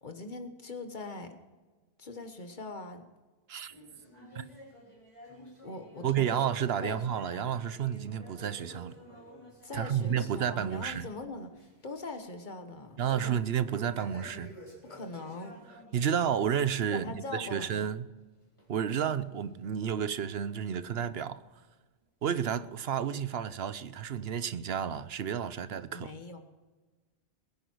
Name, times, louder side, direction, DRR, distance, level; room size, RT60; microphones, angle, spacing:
voice 1, 0.0-1.3 2.0-3.1 5.6-6.4 6.8-7.0 7.3-7.6 9.6-13.4 14.8-15.6 16.9-17.9 25.9-26.4, left 2 dB, 50° left, 1.5 m, -42 dB
sound 1, 3.7-11.2 11.5-11.9 12.2-12.3 13.7-16.3 16.7-16.9 17.6-17.7 18.6-18.7 19.5-19.6, equal, 30° left, 4.1 m, -51 dB
voice 2, 6.0-8.9 9.7-11.1 13.0-14.5 15.9-18.1 18.7-21.4 22.2-26.1, right 8 dB, 75° right, 1.0 m, -31 dB
20.5 x 10.0 x 4.6 m
omnidirectional pair, 1.1 m